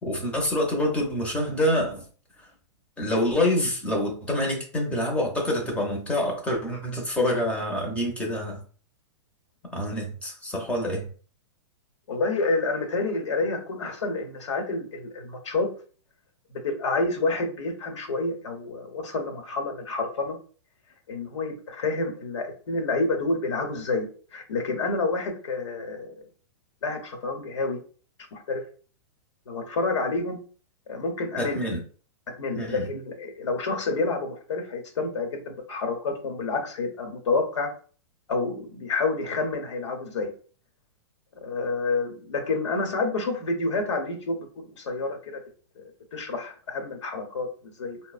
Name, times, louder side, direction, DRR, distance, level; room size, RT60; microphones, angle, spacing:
voice 1, 0.0-2.1 3.0-8.6 9.7-11.1 31.4-31.8 32.5-32.8, left 1 dB, 10° left, 0.6 m, -26 dB
voice 2, 12.1-15.7 16.5-20.4 21.1-26.1 26.8-27.8 28.3-28.6 29.5-30.4 30.9-31.6 32.3-37.7 38.3-40.3 41.4-45.4 45.8-48.0, left 3 dB, 90° left, 0.9 m, -29 dB
4.0 x 2.1 x 2.3 m
hypercardioid pair, 140°, 15 cm